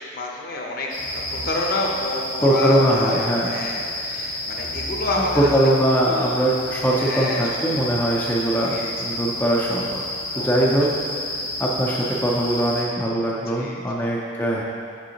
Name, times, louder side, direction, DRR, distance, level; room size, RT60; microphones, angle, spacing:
voice 1, 0.1-5.5 6.0-6.5 7.0-7.7 8.6-9.2 10.3-10.7 13.5-13.8, left 2 dB, 50° left, -1 dB, 0.7 m, -29 dB
sound 1, 0.9-12.8, left 1 dB, 80° left, 1.2 m, -30 dB
voice 2, 2.4-3.5 5.4-10.0 10.4-10.9 11.6-14.6, right 1 dB, 10° left, -5 dB, 0.4 m, -21 dB
6.2 x 5.9 x 2.9 m, 2.3 s
head